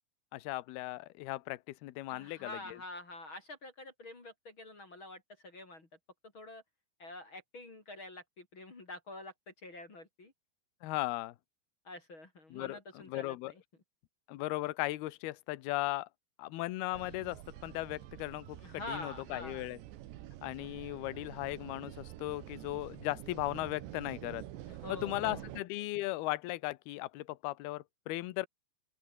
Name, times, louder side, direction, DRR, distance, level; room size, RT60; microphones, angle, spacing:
voice 1, 0.3-2.8 10.8-11.3 12.5-13.5 14.3-16.1 16.4-18.6 18.9-19.8 20.4-24.5 24.9-28.5, left 18 dB, 70° left, 2.8 m, -37 dB
voice 2, 2.1-5.9 6.3-6.6 7.0-10.3 11.8-13.6 18.6-19.7 24.7-25.4, left 2 dB, 30° left, 3.9 m, -47 dB
sound 1, 16.9-25.6, right 14 dB, 80° right, 3.5 m, -48 dB
open air
omnidirectional pair, 5.1 m